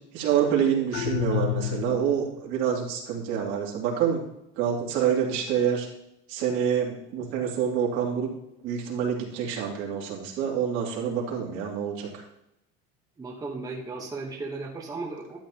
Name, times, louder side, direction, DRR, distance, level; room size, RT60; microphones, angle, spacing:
voice 1, 0.1-4.2 4.6-5.9 6.3-8.3 8.6-12.1, right 8 dB, 65° right, -2 dB, 2.7 m, -27 dB
sound 1, 0.9-2.4, left 14 dB, 70° left, 0.7 m, -29 dB
voice 2, 13.2-15.4, right 3 dB, 10° right, -1 dB, 1.0 m, -35 dB
12.0 x 8.2 x 2.8 m, 0.81 s
cardioid pair, 150°, 31 cm